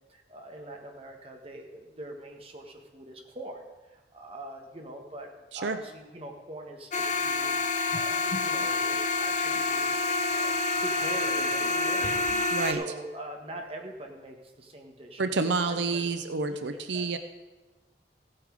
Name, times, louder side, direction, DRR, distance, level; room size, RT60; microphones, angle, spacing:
voice 1, 0.0-5.3 5.5-10.0 10.3-10.5 10.8-15.2 15.5-16.1 16.5-17.2, right 1 dB, 35° right, 2 dB, 1.6 m, -43 dB
sound 1, 6.9-12.7, left 3 dB, 45° left, 0.8 m, -27 dB
voice 2, 15.2-17.2, right 4 dB, 90° right, 9 dB, 0.7 m, -28 dB
15.5 x 8.8 x 4.9 m, 1.2 s
head